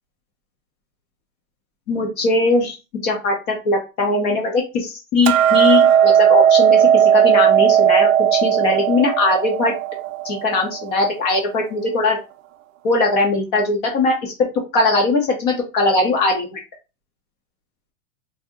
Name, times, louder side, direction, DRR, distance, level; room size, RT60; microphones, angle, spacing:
voice 1, 1.9-2.8 3.0-8.1 8.4-9.7 10.2-12.2 12.8-14.3 14.7-16.6, left 2 dB, 30° left, 1 dB, 0.6 m, -20 dB
Hammer, 5.3-11.5, right 9 dB, 60° right, 0.5 m, -16 dB
2.7 x 2.0 x 3.5 m, 0.28 s
supercardioid pair, 155°, 43 cm